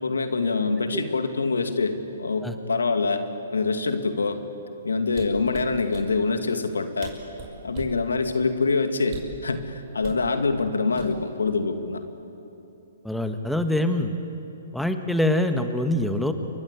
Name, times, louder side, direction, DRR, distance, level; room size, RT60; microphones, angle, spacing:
voice 1, 0.0-4.4 4.8-7.1 7.6-12.0, left 4 dB, 85° left, 7 dB, 2.4 m, -25 dB
sound 1, 5.1-6.1 6.7-6.8 7.0-8.0 9.0-9.4 10.0-10.2 11.0-11.4 11.8-12.0, right 7 dB, 35° right, 5.6 m, -40 dB
voice 2, 13.0-14.1 14.7-16.3, left 1 dB, ahead, 6 dB, 1.6 m, -24 dB
28.5 x 23.5 x 8.4 m, 2.9 s
hypercardioid pair, 130°, 0 cm